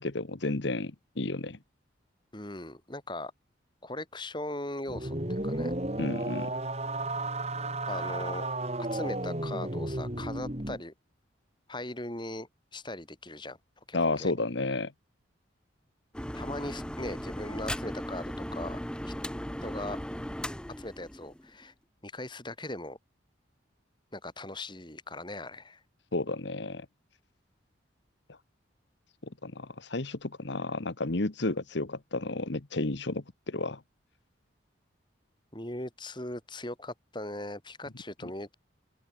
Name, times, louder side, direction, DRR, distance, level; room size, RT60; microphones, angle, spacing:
voice 1, 0.0-1.6 6.0-6.5 13.9-14.9 26.1-26.9 29.4-33.8, left 2 dB, 65° left, 1.3 m, -32 dB
voice 2, 2.3-3.3 3.8-5.7 7.9-8.5 8.8-10.9 11.7-13.6 13.9-14.3 16.3-18.8 19.0-19.1 19.6-20.0 20.8-21.7 22.0-23.0 24.1-25.8 35.5-38.5, left 1 dB, 25° left, 4.4 m, -39 dB
sound 1, 4.9-10.8, right 2 dB, 30° right, 3.3 m, -33 dB
sound 2, 16.1-21.6, equal, 5° left, 1.3 m, -37 dB
open air
head